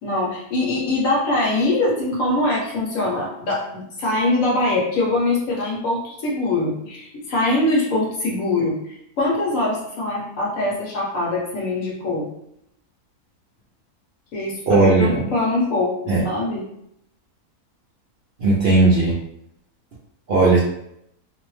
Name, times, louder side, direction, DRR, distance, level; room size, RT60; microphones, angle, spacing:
voice 1, 0.0-12.3 14.3-15.9 16.2-16.6, left 2 dB, 65° left, -4 dB, 1.1 m, -23 dB
voice 2, 14.7-15.3 16.1-16.2 18.4-19.2 20.3-20.6, right 3 dB, 65° right, -7 dB, 0.6 m, -16 dB
2.6 x 2.1 x 3.0 m, 0.75 s
omnidirectional pair, 1.6 m